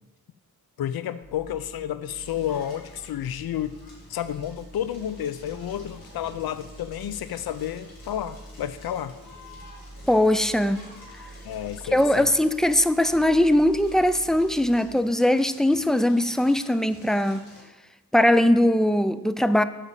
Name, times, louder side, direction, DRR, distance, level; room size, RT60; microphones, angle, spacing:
voice 1, 0.8-3.8 4.1-9.1 11.4-12.3, left 10 dB, 90° left, 13 dB, 0.5 m, -31 dB
sound 1, 1.2-14.8, right 1 dB, 20° right, 1.7 m, -47 dB
Crackle, 2.1-17.6, left 2 dB, 75° left, 3.6 m, -50 dB
voice 2, 10.1-10.8 11.9-17.4 18.1-19.6, left 1 dB, ahead, 12 dB, 0.3 m, -20 dB
8.2 x 5.1 x 7.3 m, 1.1 s
wide cardioid pair, 120°, 36 cm